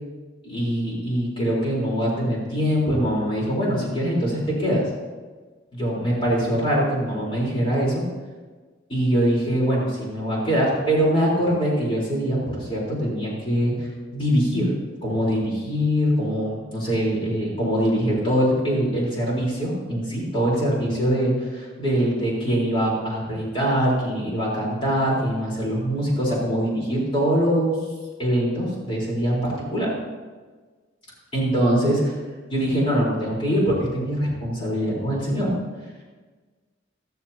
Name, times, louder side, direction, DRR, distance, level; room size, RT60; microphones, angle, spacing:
voice 1, 0.4-4.9 5.7-8.0 8.9-14.7 15.0-27.8 28.2-29.9 31.3-32.1 32.5-35.5, equal, 30° left, -5 dB, 4.1 m, -23 dB
14.5 x 14.0 x 2.9 m, 1.4 s
head